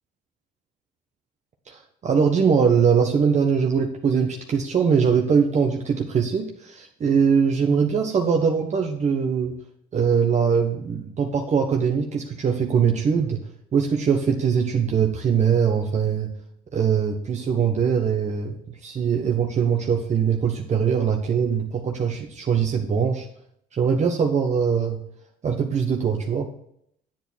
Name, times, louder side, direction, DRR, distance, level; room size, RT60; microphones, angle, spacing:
voice 1, 1.7-9.6 9.9-13.4 13.7-16.3 16.7-23.2 23.7-25.0 25.4-26.5, right 6 dB, 40° right, 2 dB, 1.2 m, -22 dB
9.1 x 8.2 x 4.5 m, 0.69 s
supercardioid pair, 85°, 18 cm